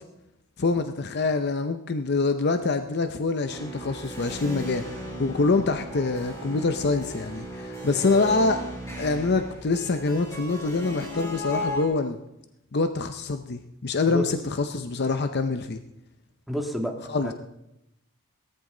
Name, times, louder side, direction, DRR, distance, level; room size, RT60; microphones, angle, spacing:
voice 1, 0.6-8.6 9.0-12.2 12.7-15.8 17.0-17.3, left 3 dB, 55° left, 8 dB, 0.7 m, -25 dB
sound 1, 3.5-11.8, equal, 15° left, 4.0 m, -36 dB
voice 2, 16.5-16.9 17.2-17.3, equal, ahead, 1 dB, 1.7 m, -28 dB
18.0 x 13.5 x 3.9 m, 0.87 s
head